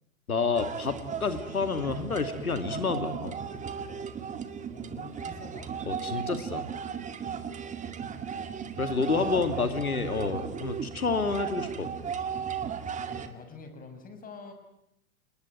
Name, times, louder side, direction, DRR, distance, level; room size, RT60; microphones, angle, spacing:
voice 1, 0.3-3.3 5.9-6.7 8.8-11.9, left 4 dB, 85° left, 9 dB, 2.7 m, -29 dB
sound 1, 0.5-13.3, right 7 dB, 15° right, 2.2 m, -36 dB
voice 2, 4.7-5.8 7.8-7.9 9.0-9.8 10.2-10.4 12.9-14.5, left 4 dB, 20° left, 7 dB, 6.0 m, -47 dB
30.0 x 20.0 x 9.4 m, 0.80 s
figure-of-eight pair, 110°, 42 cm